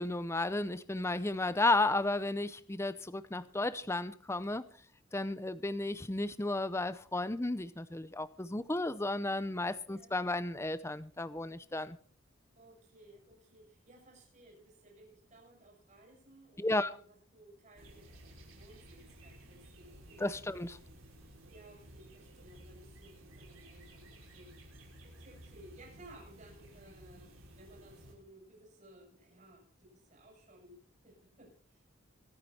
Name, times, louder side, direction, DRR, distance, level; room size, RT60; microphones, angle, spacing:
voice 1, 0.0-4.6 5.1-12.0 16.6-16.9 20.2-20.8, left 2 dB, 15° left, 0.6 m, -33 dB
voice 2, 12.6-20.7 21.5-31.9, right 1 dB, 35° right, 7.6 m, -58 dB
sound 1, 17.7-28.1, right 1 dB, 80° right, 5.9 m, -55 dB
23.5 x 9.7 x 4.3 m
head